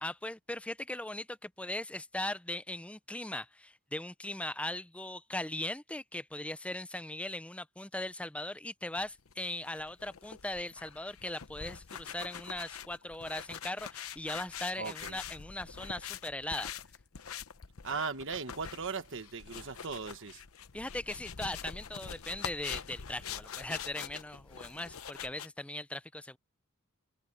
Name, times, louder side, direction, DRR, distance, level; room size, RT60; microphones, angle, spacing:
voice 1, 0.0-16.7 20.7-26.4, left 1 dB, 5° left, 0.5 m, -39 dB
sound 1, 9.0-25.5, left 7 dB, 80° left, 0.9 m, -45 dB
voice 2, 14.8-15.2 17.8-20.4, right 5 dB, 60° right, 1.2 m, -38 dB
head